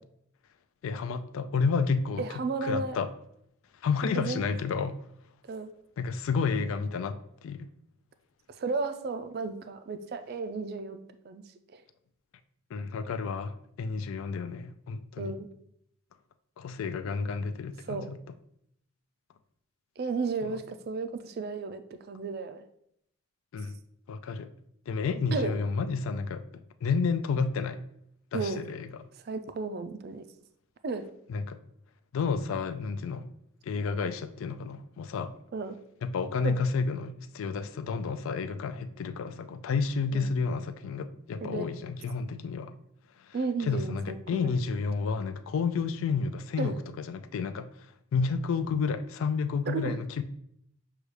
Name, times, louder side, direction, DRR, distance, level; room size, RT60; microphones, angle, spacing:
voice 1, 0.8-2.2 2.6-3.1 3.8-5.0 6.0-7.7 12.7-15.3 16.6-18.2 20.4-20.6 23.5-23.8 24.1-24.5 24.9-27.8 28.3-28.9 31.3-31.6 32.1-33.3 33.6-35.3 36.0-42.7 43.3-50.2, left 5 dB, 70° left, 11 dB, 0.3 m, -31 dB
voice 2, 2.2-3.0 4.1-4.4 5.5-5.7 8.5-11.4 11.7-11.8 15.2-15.5 17.9-18.1 20.0-21.8 22.1-22.6 25.3-25.6 28.3-28.6 29.3-30.2 30.8-31.1 35.5-35.8 36.4-36.6 40.1-40.3 41.4-41.7 43.3-44.5 46.6-46.8 49.7-50.0, right 4 dB, 45° right, 10 dB, 0.3 m, -33 dB
6.5 x 2.3 x 3.2 m, 0.73 s
head